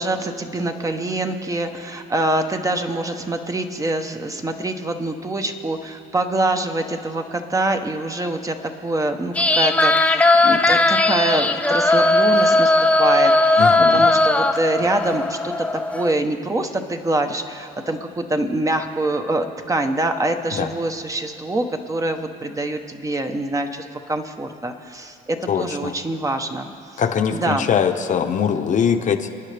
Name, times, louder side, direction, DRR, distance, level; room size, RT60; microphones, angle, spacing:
voice 1, 0.0-8.6 8.8-27.0 27.3-27.7, right 2 dB, 20° right, 6 dB, 0.9 m, -25 dB
sound 1, 9.3-16.1, left 2 dB, 10° left, 0.6 m, -17 dB
voice 2, 13.6-14.0 20.5-20.7 25.5-25.9 27.0-29.3, left 7 dB, 50° left, 6 dB, 0.9 m, -22 dB
29.5 x 9.9 x 3.4 m, 2.8 s
cardioid pair, 110°, 17 cm